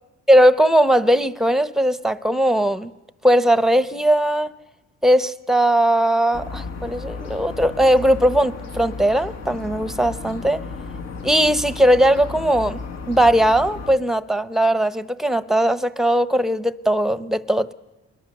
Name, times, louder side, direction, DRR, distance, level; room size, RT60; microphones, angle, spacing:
voice 1, 0.3-2.9 3.2-4.5 5.0-10.6 11.2-12.8 13.1-17.7, equal, ahead, 15 dB, 0.8 m, -18 dB
sound 1, 6.3-14.0, left 4 dB, 55° left, 1.5 m, -34 dB
28.5 x 21.5 x 6.7 m, 1.1 s
cardioid pair, 90°, 30 cm